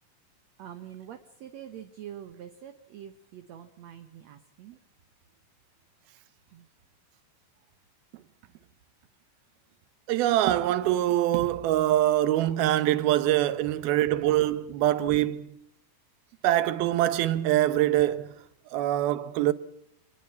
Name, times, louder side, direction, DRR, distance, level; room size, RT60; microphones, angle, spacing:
voice 1, 0.6-4.8 6.5-6.7, right 10 dB, 60° right, 2.0 m, -45 dB
voice 2, 10.1-15.5 16.4-18.3 18.7-19.5, right 13 dB, 85° right, 2.9 m, -24 dB
26.0 x 20.5 x 5.8 m
omnidirectional pair, 4.2 m